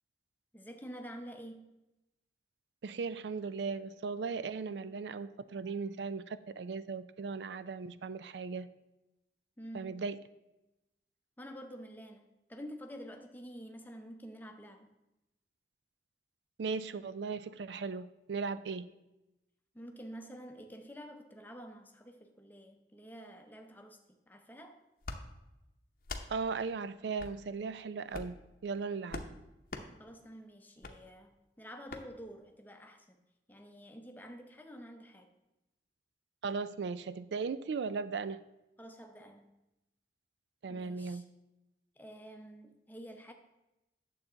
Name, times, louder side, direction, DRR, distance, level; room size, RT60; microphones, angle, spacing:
voice 1, 0.5-1.7 9.6-10.0 11.4-14.9 19.7-24.0 24.3-24.8 30.0-33.2 33.5-35.3 38.8-39.5 40.7-41.2 42.0-43.3, equal, 10° left, 5 dB, 0.7 m, -49 dB
voice 2, 2.8-8.7 9.7-10.2 16.6-18.9 26.3-28.3 28.6-29.2 36.4-38.4 40.6-41.2, right 5 dB, 80° right, 15 dB, 0.4 m, -37 dB
sound 1, 25.0-25.2 26.0-26.3 27.2-27.4 28.1-28.4 29.1-29.3 29.7-29.9 30.8-31.0 31.9-32.0, left 3 dB, 50° left, 0.7 m, -41 dB
9.1 x 7.1 x 3.9 m, 0.96 s
head